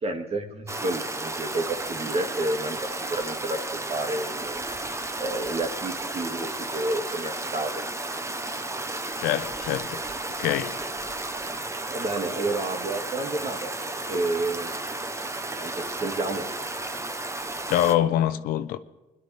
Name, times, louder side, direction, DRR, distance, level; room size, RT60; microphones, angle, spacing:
voice 1, 0.0-4.6 5.2-7.8 11.9-13.7 14.1-14.8 15.6-16.5, right 2 dB, 45° right, 2.4 m, -30 dB
Stream, 0.7-17.9, right 2 dB, 20° right, 1.2 m, -33 dB
voice 2, 9.2-10.0 10.4-10.8 17.7-18.8, left 12 dB, 80° left, 0.8 m, -24 dB
21.0 x 11.5 x 3.6 m
supercardioid pair, 65°, 15 cm